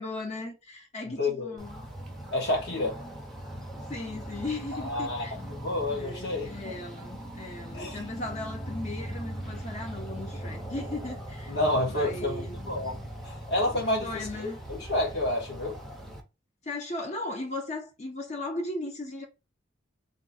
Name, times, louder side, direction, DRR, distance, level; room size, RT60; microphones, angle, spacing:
voice 1, 0.0-1.9 3.9-5.3 5.9-11.6 11.9-12.5 14.0-14.6 16.6-19.3, left 2 dB, 35° left, 0.7 m, -37 dB
voice 2, 1.0-1.6 2.3-3.0 4.7-5.2 5.6-6.8 7.7-8.0 11.5-15.8, left 1 dB, 55° left, 1.6 m, -30 dB
sound 1, 1.6-16.2, right 1 dB, ahead, 0.7 m, -40 dB
3.7 x 2.3 x 4.1 m
head